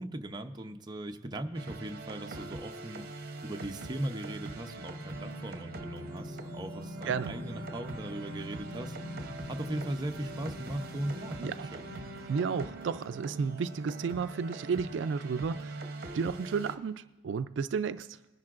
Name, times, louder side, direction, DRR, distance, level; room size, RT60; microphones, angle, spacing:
voice 1, 0.0-9.2 9.5-11.7, right 1 dB, 25° right, 4 dB, 0.6 m, -39 dB
sound 1, 1.5-16.8, right 2 dB, 55° right, 0.8 m, -43 dB
sound 2, 4.2-12.3, left 1 dB, 75° left, 0.6 m, -44 dB
voice 2, 11.4-11.7 12.3-18.2, right 5 dB, 75° right, 12 dB, 0.3 m, -33 dB
20.0 x 10.5 x 2.5 m, 1.1 s
head